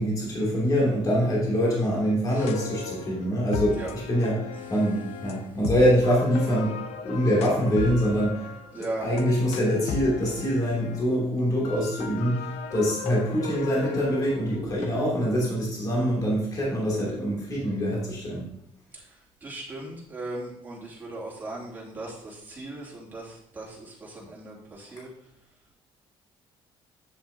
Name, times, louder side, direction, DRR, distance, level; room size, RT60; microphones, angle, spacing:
voice 1, 0.0-3.8 4.1-4.4 4.7-6.8 7.0-8.4 9.0-18.5, equal, 35° left, -5 dB, 2.8 m, -24 dB
sound 1, 2.4-11.1 11.6-14.9, left 6 dB, 80° left, 0.7 m, -36 dB
voice 2, 8.7-9.1 18.9-25.1, right 2 dB, 20° right, -6 dB, 2.8 m, -38 dB
8.7 x 7.5 x 2.8 m, 0.80 s
cardioid pair, 145°, 11 cm